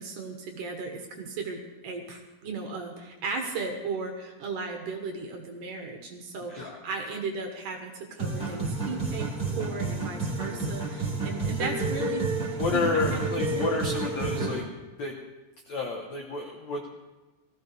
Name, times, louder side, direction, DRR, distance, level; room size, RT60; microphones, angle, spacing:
voice 1, 0.0-9.3 9.6-12.3 12.7-13.9, right 4 dB, 65° right, 3 dB, 2.4 m, -36 dB
sound 1, 8.2-14.6, right 3 dB, 5° right, 3.6 m, -30 dB
voice 2, 12.5-14.6 15.0-15.1 15.7-16.9, left 4 dB, 75° left, 1 dB, 1.6 m, -30 dB
18.5 x 15.5 x 3.3 m, 1.2 s
omnidirectional pair, 4.8 m